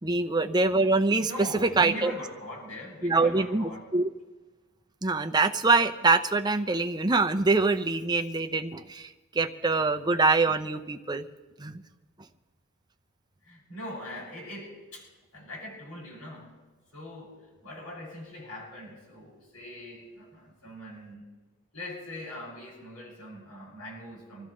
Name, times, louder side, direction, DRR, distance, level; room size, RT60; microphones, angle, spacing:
voice 1, 0.0-1.3 1.6-2.1 3.0-4.1 5.0-11.3 11.6-11.8, right 3 dB, 20° right, 6 dB, 0.7 m, -24 dB
voice 2, 0.7-3.9 13.4-15.1 15.3-16.6 16.9-17.4 17.6-21.2 21.7-24.5, equal, 90° left, -4 dB, 6.3 m, -41 dB
26.0 x 14.0 x 3.2 m, 1.3 s
head